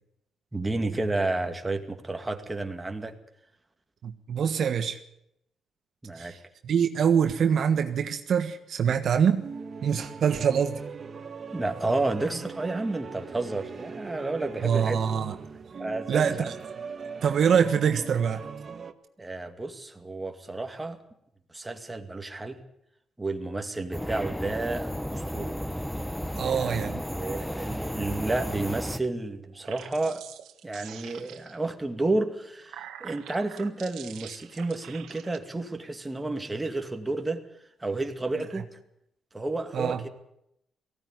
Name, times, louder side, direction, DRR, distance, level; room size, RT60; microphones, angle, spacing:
voice 1, 0.5-3.2 6.0-6.3 11.5-15.0 15.8-16.5 19.2-21.0 21.5-22.6 23.2-25.6 26.3-26.8 27.1-30.2 30.6-37.4 37.8-38.7 39.3-40.1, right 2 dB, 15° right, 5 dB, 2.3 m, -31 dB
voice 2, 4.0-5.0 6.2-6.4 6.6-9.4 9.8-10.8 14.6-15.3 16.1-16.5 17.2-18.4 26.4-27.0 39.7-40.0, right 7 dB, 60° right, 7 dB, 1.4 m, -24 dB
sound 1, 9.2-18.9, right 5 dB, 40° right, 1.4 m, -40 dB
sound 2, 23.9-29.0, equal, 5° left, 1.0 m, -33 dB
sound 3, 29.5-31.7 32.4-35.4, right 11 dB, 85° right, 1.6 m, -45 dB
18.5 x 16.0 x 9.6 m, 0.79 s
cardioid pair, 90°, 0 cm